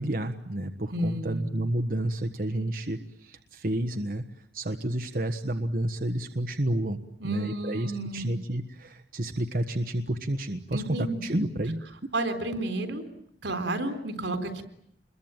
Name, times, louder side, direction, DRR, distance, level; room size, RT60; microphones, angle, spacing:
voice 1, 0.0-4.2 4.5-11.9, right 1 dB, 50° right, 8 dB, 1.4 m, -30 dB
voice 2, 0.9-1.5 7.2-8.4 10.7-11.4 12.1-13.0 13.4-14.6, right 1 dB, 85° right, 9 dB, 3.8 m, -31 dB
27.5 x 22.5 x 9.0 m, 0.72 s
head